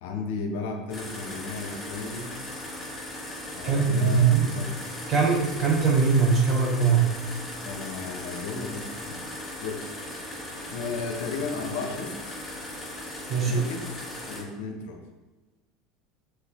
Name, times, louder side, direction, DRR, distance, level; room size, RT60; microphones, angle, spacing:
voice 1, 0.0-2.3 3.5-4.7 7.6-9.2 9.6-9.9 10.7-12.4 13.5-15.0, left 4 dB, 70° left, 4 dB, 0.5 m, -34 dB
sound 1, 0.9-14.4, left 1 dB, 15° left, 1.2 m, -38 dB
voice 2, 3.6-4.5 5.1-7.1 13.3-13.7, right 5 dB, 40° right, -1 dB, 0.6 m, -21 dB
3.2 x 3.1 x 2.3 m, 1.1 s
hypercardioid pair, 80°, 0 cm